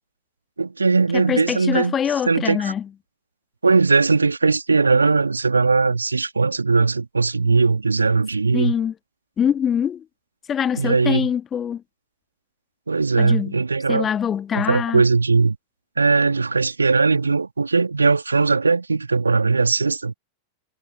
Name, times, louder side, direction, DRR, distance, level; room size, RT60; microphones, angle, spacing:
voice 1, 0.6-1.9 2.3-2.7 3.6-8.7 10.7-11.3 12.9-14.1 14.5-15.6 16.0-20.1, right 4 dB, 80° right, 2.5 m, -19 dB
voice 2, 1.1-2.9 8.5-8.9 9.4-10.0 10.5-11.8 13.2-13.6 13.9-15.0, left 8 dB, 25° left, 1.7 m, -24 dB
figure-of-eight pair, 90°, 0 cm